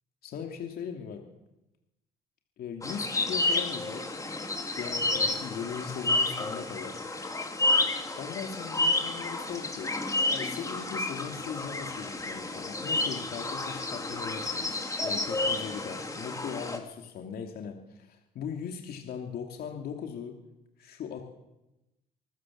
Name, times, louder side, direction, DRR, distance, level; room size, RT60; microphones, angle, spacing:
voice 1, 0.2-1.2 2.6-4.0 4.7-7.0 8.2-9.9 10.3-20.4 20.8-21.2, left 7 dB, 65° left, 3 dB, 2.8 m, -39 dB
sound 1, 2.8-16.8, left 2 dB, 20° left, 3.4 m, -30 dB
25.5 x 14.5 x 7.5 m, 0.96 s
cardioid pair, 90°, 17 cm